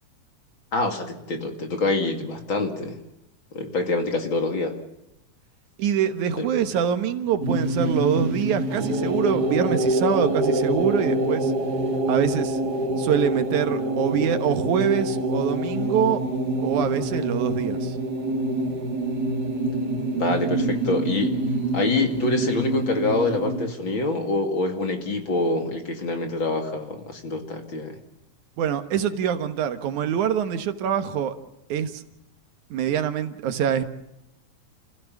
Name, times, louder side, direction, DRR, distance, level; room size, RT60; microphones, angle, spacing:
voice 1, 0.7-3.0 3.5-4.8 6.4-6.5 20.1-21.4 21.7-28.0, left 2 dB, 45° left, 5 dB, 2.8 m, -26 dB
voice 2, 5.8-11.5 12.1-12.6 13.0-16.2 16.6-18.0 28.6-31.4 31.7-32.0 32.7-33.9, right 8 dB, 80° right, 10 dB, 2.7 m, -24 dB
sound 1, 7.4-23.7, right 1 dB, 35° right, 2.5 m, -26 dB
29.0 x 16.0 x 7.2 m, 0.86 s
omnidirectional pair, 3.4 m